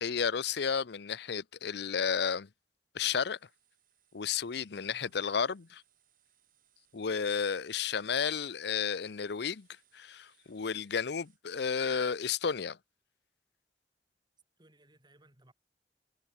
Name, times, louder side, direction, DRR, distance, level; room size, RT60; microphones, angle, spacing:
voice 1, 0.0-2.5 2.9-3.4 4.1-5.8 6.9-9.7 9.9-12.8, left 6 dB, 65° left, 0.6 m, -32 dB
sound 1, 3.1-11.4, right 12 dB, 55° right, 6.4 m, -71 dB
voice 2, 4.9-5.3 14.6-15.5, right 1 dB, 25° right, 4.8 m, -63 dB
head